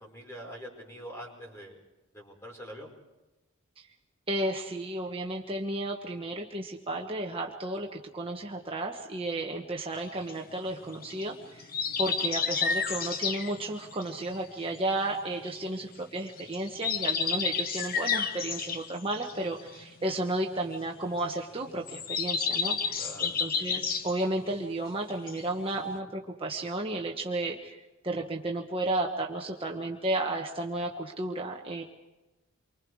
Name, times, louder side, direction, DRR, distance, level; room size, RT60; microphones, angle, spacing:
voice 1, 0.0-1.8 2.1-2.9 22.9-23.4, equal, 15° left, -1 dB, 5.0 m, -44 dB
voice 2, 4.3-11.7 12.0-27.8 28.0-31.8, right 1 dB, 25° right, 0 dB, 1.3 m, -33 dB
sound 1, 10.0-15.8 16.2-24.8 25.1-25.9, left 6 dB, 45° left, 1.1 m, -32 dB
28.5 x 24.5 x 4.8 m, 1.1 s
head